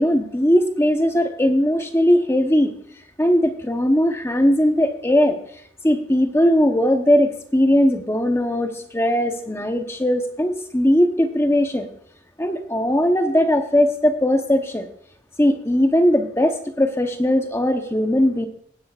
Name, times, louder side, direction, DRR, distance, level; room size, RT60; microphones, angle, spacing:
voice 1, 0.0-2.7 3.2-5.4 5.8-11.9 12.4-14.9 15.4-18.5, equal, 15° left, 6 dB, 0.8 m, -19 dB
20.0 x 10.0 x 2.4 m, 0.65 s
head